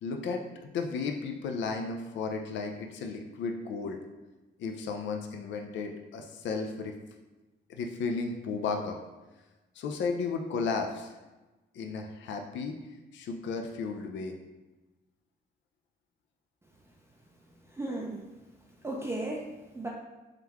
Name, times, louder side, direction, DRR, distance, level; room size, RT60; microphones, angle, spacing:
voice 1, 0.0-4.0 4.6-6.9 7.7-9.0 9.8-11.1 11.7-12.8 13.1-14.3, left 4 dB, 65° left, 4 dB, 0.5 m, -34 dB
voice 2, 17.7-18.3 18.8-19.9, right 2 dB, 15° right, -2 dB, 0.4 m, -35 dB
3.7 x 3.4 x 2.9 m, 1.1 s
cardioid pair, 90°, 20 cm